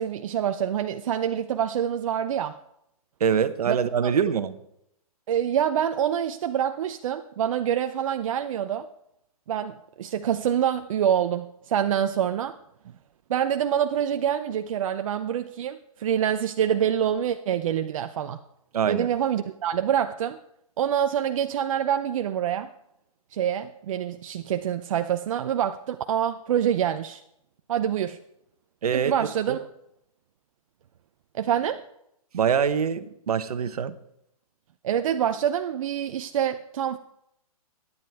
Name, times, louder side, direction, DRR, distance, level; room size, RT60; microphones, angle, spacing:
voice 1, 0.0-2.6 3.7-3.8 4.0-4.1 5.3-8.9 9.5-12.6 13.3-18.4 18.8-20.4 20.8-22.7 23.3-27.2 27.7-28.2 28.9-29.6 31.3-31.8 34.8-37.0, right 9 dB, 60° right, 0.7 m, -26 dB
voice 2, 3.2-4.5 18.7-19.1 28.8-29.1 29.5-29.6 32.3-33.9, right 7 dB, 75° right, 1.1 m, -24 dB
23.0 x 9.6 x 3.5 m
hypercardioid pair, 145°, 19 cm